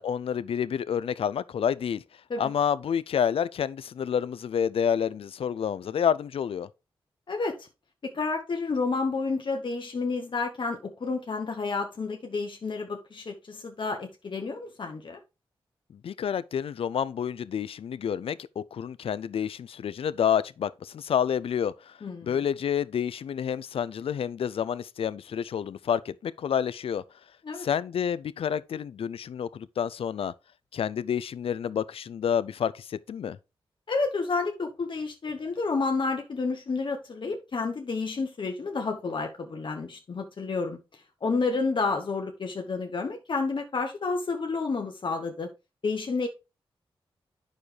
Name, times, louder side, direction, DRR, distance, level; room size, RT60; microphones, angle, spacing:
voice 1, 0.0-2.0 2.4-6.7 15.9-27.0 27.6-30.3 30.7-33.4, left 8 dB, 75° left, 0.4 m, -29 dB
voice 2, 7.3-7.7 8.0-15.2 22.0-22.4 27.4-27.7 33.9-40.8 41.2-45.5 45.8-46.3, left 4 dB, 55° left, 1.0 m, -30 dB
8.6 x 6.4 x 3.3 m
cardioid pair, 55°, 10 cm